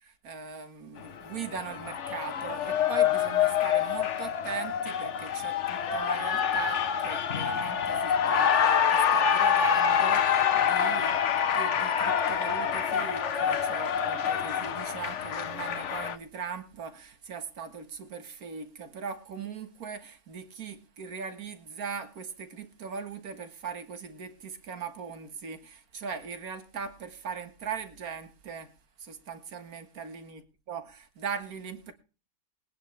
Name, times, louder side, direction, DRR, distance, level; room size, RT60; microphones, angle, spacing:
voice 1, 0.0-11.2 11.5-28.7 29.0-30.4 30.7-31.9, right 6 dB, 55° right, 2.0 m, -40 dB
Cheering, 1.0-16.2, left 8 dB, 50° left, 1.0 m, -26 dB
21.0 x 9.8 x 3.4 m
omnidirectional pair, 1.9 m